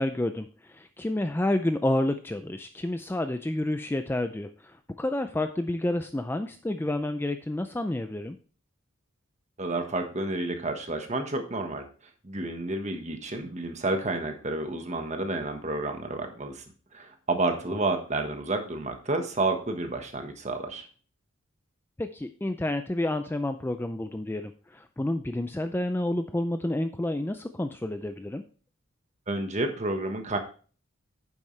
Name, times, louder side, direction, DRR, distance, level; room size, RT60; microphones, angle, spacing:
voice 1, 0.0-8.4 22.0-28.4, left 1 dB, 10° left, 8 dB, 0.3 m, -29 dB
voice 2, 9.6-11.8 12.2-16.6 16.9-20.9 29.3-30.4, right 2 dB, 35° right, 5 dB, 1.3 m, -30 dB
9.7 x 7.3 x 3.2 m, 0.39 s
head